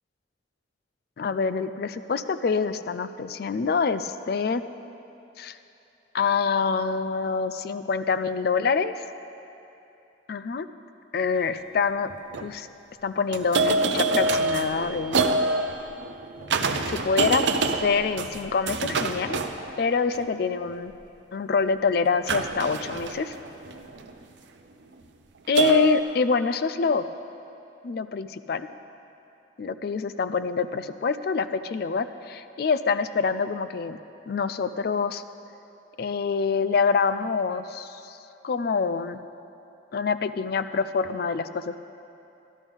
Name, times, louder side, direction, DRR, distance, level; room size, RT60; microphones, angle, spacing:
voice 1, 1.2-4.6 5.4-5.6 6.1-9.1 10.3-10.7 11.1-12.1 12.4-12.7 13.0-15.2 16.9-17.5 17.8-19.4 19.8-20.9 21.3-23.3 25.5-27.1 27.8-28.7 29.6-34.0 34.3-35.2 36.0-38.2 38.4-39.2 39.9-41.8, left 5 dB, 50° left, 12 dB, 0.3 m, -26 dB
sound 1, 11.4-11.5 12.1-12.5 13.3-20.3 22.3-24.2 25.6-26.0, right 3 dB, 65° right, 0.6 m, -26 dB
13.5 x 12.0 x 3.5 m, 3.0 s
head